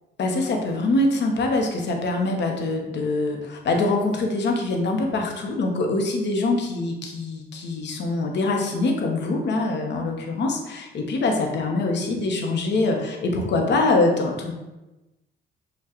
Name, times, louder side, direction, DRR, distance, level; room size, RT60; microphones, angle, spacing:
voice 1, 0.2-14.5, left 2 dB, 60° left, 2 dB, 0.9 m, -24 dB
6.7 x 2.4 x 2.9 m, 1.0 s
cardioid pair, 90°, 20 cm